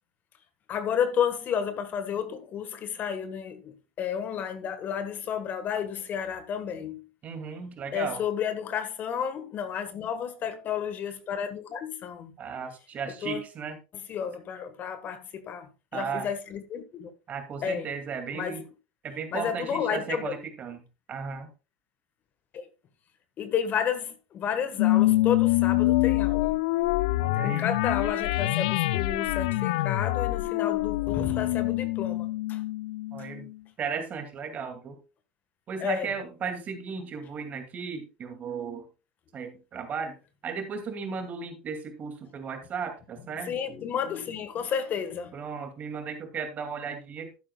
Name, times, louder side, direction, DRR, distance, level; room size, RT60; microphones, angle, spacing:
voice 1, 0.7-7.0 7.9-12.3 13.2-13.4 14.1-17.1 17.6-17.9 18.3-18.6 19.3-20.4 22.5-22.7 23.4-26.6 27.4-32.6 33.2-33.3 35.8-36.1 43.5-45.3, left 8 dB, 40° left, 1.3 m, -31 dB
voice 2, 7.2-8.2 12.4-13.8 15.9-16.3 17.3-18.6 19.0-20.8 21.1-21.5 27.2-27.7 33.1-33.5 33.8-35.0 35.7-38.8 39.3-40.2 40.4-43.6 45.3-47.3, right 5 dB, 35° right, 2.3 m, -35 dB
sound 1, 24.8-33.5, left 18 dB, 70° left, 0.4 m, -25 dB
12.0 x 9.9 x 2.3 m
hypercardioid pair, 90°, 4 cm